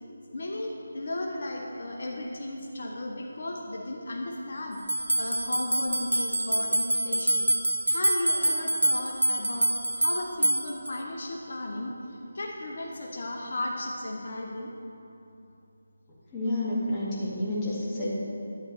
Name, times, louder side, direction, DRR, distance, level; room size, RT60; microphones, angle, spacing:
voice 1, 0.3-7.5 7.9-14.7, left 1 dB, 55° left, 0 dB, 0.8 m, -35 dB
sound 1, 4.9-10.9, right 1 dB, 80° right, 0.7 m, -26 dB
voice 2, 16.3-18.1, left 1 dB, 20° left, -7 dB, 1.8 m, -29 dB
11.0 x 9.4 x 3.1 m, 2.8 s
figure-of-eight pair, 155°, 0 cm